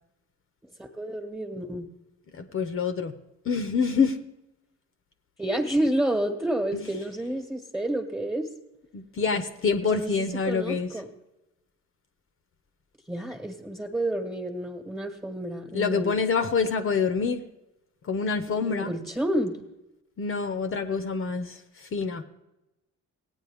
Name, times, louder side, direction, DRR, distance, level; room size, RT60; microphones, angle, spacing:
voice 1, 0.8-1.9 5.4-8.5 9.8-11.1 13.1-16.1 18.6-19.6, right 1 dB, 10° right, 1 dB, 1.4 m, -29 dB
voice 2, 2.3-3.2 3.4-4.2 6.7-6.9 8.9-10.9 15.7-17.4 18.0-18.9 20.2-22.2, left 5 dB, 45° left, 8 dB, 0.8 m, -26 dB
16.5 x 9.0 x 3.5 m, 0.95 s
cardioid pair, 90°, 30 cm